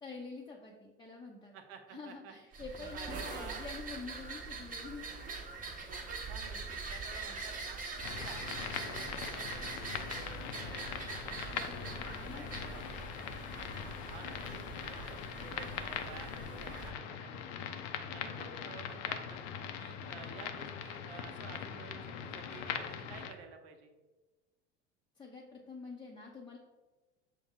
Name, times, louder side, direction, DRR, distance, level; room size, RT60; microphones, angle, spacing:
voice 1, 0.0-1.6 1.9-5.1 11.5-12.9 25.2-26.6, left 4 dB, 15° left, -2 dB, 0.5 m, -47 dB
voice 2, 1.5-3.6 5.9-7.8 8.2-12.9 14.1-17.7 18.1-19.4 19.8-23.9, right 6 dB, 70° right, 5 dB, 0.7 m, -52 dB
sound 1, 2.5-16.9, right 4 dB, 25° right, 0.8 m, -43 dB
sound 2, 8.0-23.3, left 8 dB, 60° left, 0.5 m, -41 dB
6.1 x 2.1 x 3.5 m, 1.2 s
hypercardioid pair, 80°, 33 cm